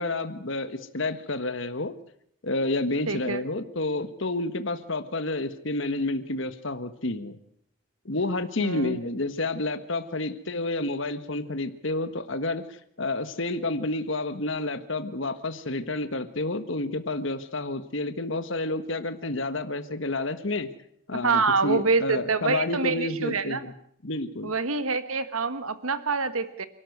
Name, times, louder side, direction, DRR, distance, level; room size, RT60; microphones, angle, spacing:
voice 1, 0.0-1.9 2.4-7.4 8.0-12.6 13.0-20.7 21.1-23.7 24.0-24.5, left 2 dB, 60° left, 10 dB, 1.5 m, -30 dB
voice 2, 3.1-3.4 8.6-9.0 21.2-23.7 24.4-26.6, right 4 dB, 75° right, 12 dB, 1.5 m, -26 dB
29.0 x 12.5 x 8.0 m, 0.68 s
head